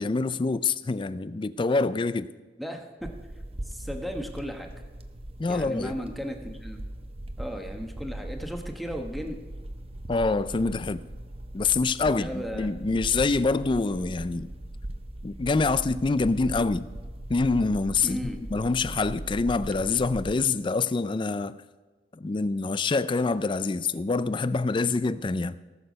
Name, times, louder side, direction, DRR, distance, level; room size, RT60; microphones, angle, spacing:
voice 1, 0.0-2.3 5.4-5.9 10.1-11.0 11.5-14.5 15.2-16.9 17.3-21.6 22.1-25.6, left 3 dB, 30° left, 0.4 m, -26 dB
voice 2, 2.6-3.1 3.7-4.7 5.5-6.8 7.4-9.4 12.0-12.7 18.0-18.4, equal, ahead, 1.1 m, -35 dB
sound 1, 3.0-20.3, right 1 dB, 35° right, 0.7 m, -39 dB
18.5 x 6.8 x 5.2 m
head